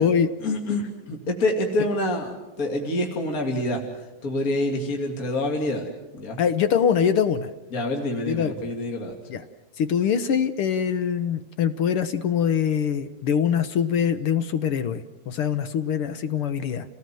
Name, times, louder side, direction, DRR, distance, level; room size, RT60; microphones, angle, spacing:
voice 1, 0.4-3.8 4.2-5.8 6.1-6.4 7.7-9.1, left 1 dB, 30° left, 1 dB, 2.9 m, -26 dB
voice 2, 6.4-7.5 8.3-8.7 9.3-9.4 9.8-16.8, left 8 dB, 65° left, 11 dB, 1.5 m, -23 dB
29.0 x 19.0 x 7.7 m, 1.0 s
omnidirectional pair, 3.4 m